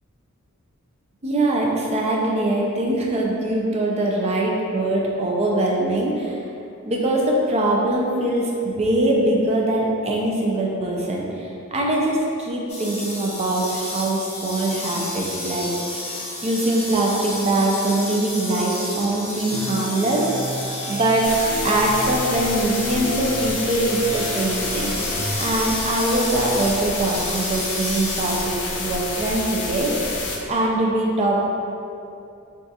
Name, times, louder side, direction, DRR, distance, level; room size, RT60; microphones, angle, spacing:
voice 1, 1.2-6.4 6.9-16.0 16.4-20.3 20.9-21.4 21.6-24.9 25.4-30.2 30.5-31.4, right 1 dB, 30° right, -2 dB, 0.4 m, -22 dB
sound 1, 12.7-28.4, left 1 dB, 30° left, 0.7 m, -32 dB
sound 2, 19.5-25.3, equal, 15° right, 0.9 m, -33 dB
sound 3, 21.2-30.4, left 3 dB, 85° left, 0.5 m, -29 dB
2.4 x 2.4 x 3.9 m, 2.6 s
head